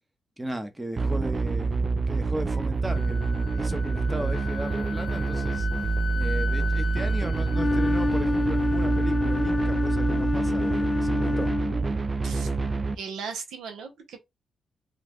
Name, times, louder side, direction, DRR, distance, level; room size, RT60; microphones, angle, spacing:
voice 1, 0.4-1.8 2.1-5.7 6.1-11.5, right 1 dB, 15° right, 0.8 m, -36 dB
sound 1, 1.0-12.9, right 4 dB, 35° right, 0.4 m, -27 dB
Wind instrument woodwind instrument, 2.5-10.3, left 6 dB, 65° left, 0.8 m, -39 dB
Wind instrument woodwind instrument 2, 7.5-12.0, left 3 dB, 25° left, 0.5 m, -27 dB
voice 2, 13.0-14.3, right 5 dB, 85° right, 0.8 m, -37 dB
2.5 x 2.2 x 3.5 m
cardioid pair, 70°, 0 cm